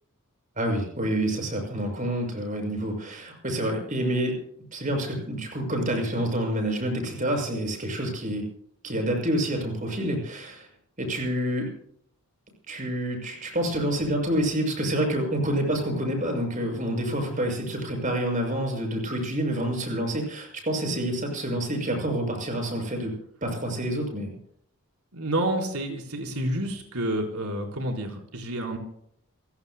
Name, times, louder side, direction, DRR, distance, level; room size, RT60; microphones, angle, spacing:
voice 1, 0.6-4.4 4.7-8.4 8.8-10.7 11.0-11.7 12.7-23.1 23.4-24.3, right 1 dB, 35° right, 2 dB, 6.5 m, -28 dB
voice 2, 25.1-28.8, right 1 dB, 85° right, 1 dB, 4.1 m, -29 dB
29.0 x 17.0 x 2.2 m, 0.66 s
head